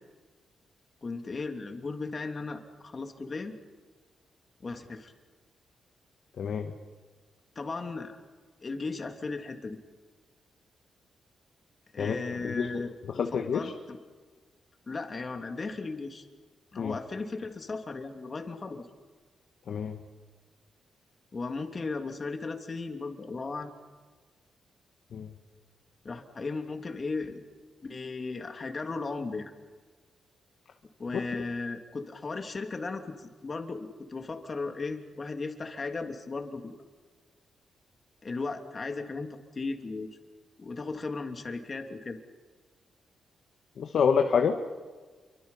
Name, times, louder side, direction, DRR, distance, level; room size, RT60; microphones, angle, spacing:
voice 1, 1.0-3.6 4.6-5.1 7.5-8.2 8.6-9.8 11.9-14.0 14.9-16.3 16.7-18.9 21.3-23.7 26.0-27.4 27.8-29.5 31.0-36.7 38.2-40.1 40.6-42.2, left 3 dB, 40° left, 5 dB, 3.1 m, -36 dB
voice 2, 6.4-6.7 12.0-13.7 16.8-17.0 19.7-20.0 25.1-25.3 31.1-31.2 43.8-44.6, left 6 dB, 65° left, 4 dB, 1.7 m, -28 dB
28.5 x 24.5 x 5.7 m, 1.4 s
cardioid pair, 80°, 0 cm